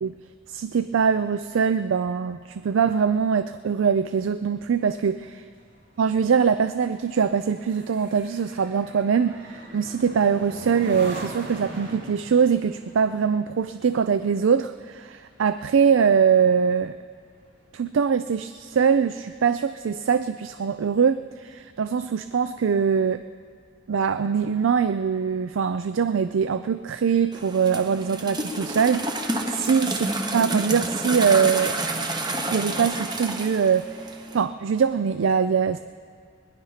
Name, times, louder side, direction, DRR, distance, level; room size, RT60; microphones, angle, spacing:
voice 1, 0.5-5.4 6.0-17.0 17.7-23.2 23.9-30.1 30.3-31.8 32.5-35.8, right 6 dB, 80° right, 11 dB, 0.4 m, -23 dB
sound 1, 4.5-16.2 16.6-16.9, right 1 dB, 60° right, 2.2 m, -41 dB
sound 2, 27.3-34.4, right 2 dB, 20° right, 1.0 m, -29 dB
20.0 x 11.0 x 5.7 m, 2.1 s
head